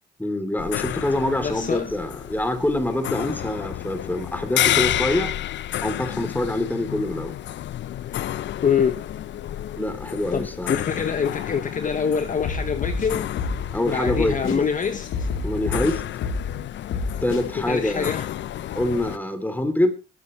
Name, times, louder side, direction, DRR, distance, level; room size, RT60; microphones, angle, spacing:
voice 1, 0.2-5.3 5.8-7.3 9.8-10.7 13.7-14.6 15.4-16.0 17.2-18.1 18.7-19.9, left 1 dB, 10° left, 3.3 m, -25 dB
sound 1, 0.6-19.2, left 12 dB, 65° left, 0.7 m, -31 dB
voice 2, 1.4-1.9 8.6-9.0 10.3-13.3 13.9-15.3 17.5-18.3, left 6 dB, 40° left, 1.1 m, -25 dB
sound 2, 12.4-13.7 14.1-14.6 15.1-16.6 16.9-17.4, left 4 dB, 85° left, 3.2 m, -28 dB
20.5 x 9.6 x 3.3 m
cardioid pair, 90°, 20 cm